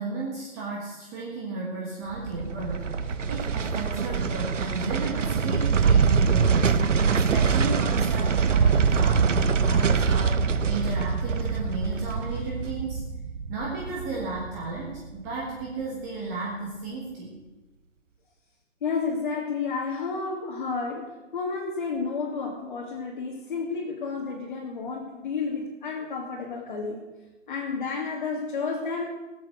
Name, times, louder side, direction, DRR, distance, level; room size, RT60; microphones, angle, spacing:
voice 1, 0.0-13.0 13.5-17.4, right 3 dB, 15° right, -3 dB, 1.6 m, -34 dB
sound 1, 2.1-15.3 15.6-15.7, right 5 dB, 75° right, 1.2 m, -24 dB
voice 2, 18.8-27.0 27.5-29.0, left 4 dB, 40° left, -3 dB, 2.6 m, -31 dB
20.0 x 8.1 x 6.5 m, 1.1 s
hypercardioid pair, 165°, 37 cm